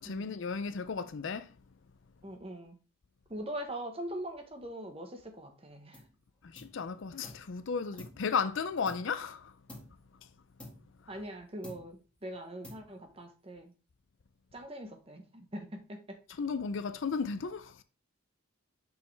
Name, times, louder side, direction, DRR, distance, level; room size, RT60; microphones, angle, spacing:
voice 1, 0.0-1.5 6.4-9.5 16.4-17.8, left 5 dB, 60° left, 0.5 m, -34 dB
voice 2, 2.2-2.8 3.3-6.0 11.1-13.7 14.5-16.2, right 1 dB, 25° right, 1.1 m, -42 dB
sound 1, 5.9-6.2 6.5-7.5 8.0-9.3 9.7-10.1 10.6-11.3 11.6-12.2 12.6-13.2, left 1 dB, 5° left, 1.8 m, -51 dB
6.3 x 5.4 x 3.3 m
head